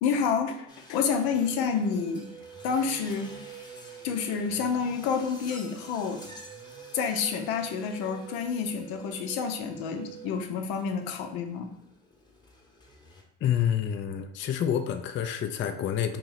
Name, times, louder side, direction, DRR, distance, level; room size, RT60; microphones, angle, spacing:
voice 1, 0.0-2.2 2.6-3.3 4.0-6.2 6.9-11.7, left 6 dB, 75° left, 6 dB, 0.7 m, -29 dB
sound 1, 0.7-13.2, left 1 dB, 10° left, 0.9 m, -51 dB
Wind instrument woodwind instrument, 1.1-10.3, right 9 dB, 25° right, 0.5 m, -47 dB
voice 2, 13.4-16.2, left 9 dB, 35° left, 7 dB, 0.4 m, -28 dB
3.1 x 2.9 x 3.9 m, 0.81 s
supercardioid pair, 75°, 37 cm